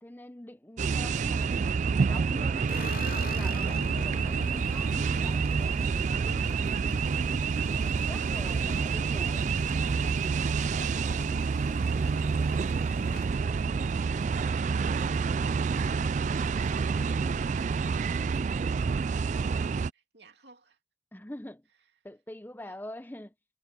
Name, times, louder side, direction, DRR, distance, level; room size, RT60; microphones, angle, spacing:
voice 1, 0.0-1.7 2.1-2.8 3.1-9.5 21.1-21.6 22.0-23.3, left 1 dB, 10° left, 0.8 m, -46 dB
sound 1, 0.8-19.9, right 5 dB, 40° right, 0.3 m, -28 dB
sound 2, 2.7-14.9 15.3-15.9 16.1-16.2 16.5-17.3, left 4 dB, 50° left, 0.8 m, -47 dB
voice 2, 19.3-20.8 21.8-21.9 22.6-22.8, right 2 dB, 65° right, 2.9 m, -56 dB
head